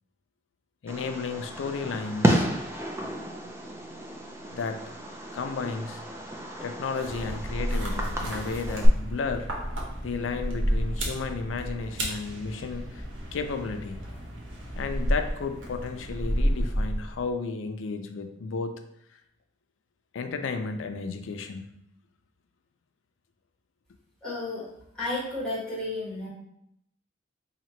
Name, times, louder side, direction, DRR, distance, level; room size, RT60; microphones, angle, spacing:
voice 1, 0.8-2.5 4.5-4.9 5.3-6.0 6.6-9.5 10.0-13.0 13.3-14.0 14.7-18.8 20.1-21.7, left 4 dB, 80° left, 7 dB, 0.4 m, -33 dB
Fireworks, 0.9-8.9, right 1 dB, 15° right, 0.4 m, -31 dB
sound 1, 6.9-17.3, equal, 80° right, 0.9 m, -31 dB
voice 2, 24.2-24.6 24.9-26.3, left 2 dB, 5° left, -8 dB, 1.5 m, -32 dB
2.9 x 2.8 x 4.3 m, 0.75 s
head